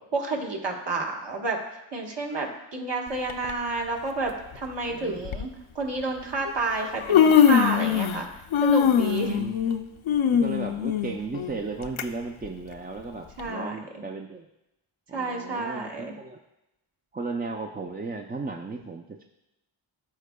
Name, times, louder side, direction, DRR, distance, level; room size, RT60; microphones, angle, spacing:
voice 1, 0.1-1.6 1.9-5.5 5.7-8.3 8.6-9.4 13.4-13.8 15.1-16.1, right 3 dB, 55° right, 0 dB, 1.3 m, -30 dB
Human voice, 3.3-3.5 4.6-4.7 5.3-5.4 6.5-6.6 6.8-8.3 8.5-12.0 12.4-12.5 13.4-13.5, left 8 dB, 75° left, 0.5 m, -21 dB
voice 2, 4.9-5.3 9.2-9.5 10.2-14.5 15.1-16.4 17.1-19.2, right 3 dB, 20° right, 2 dB, 0.3 m, -35 dB
13.0 x 4.6 x 2.2 m, 0.92 s
wide cardioid pair, 65°, 49 cm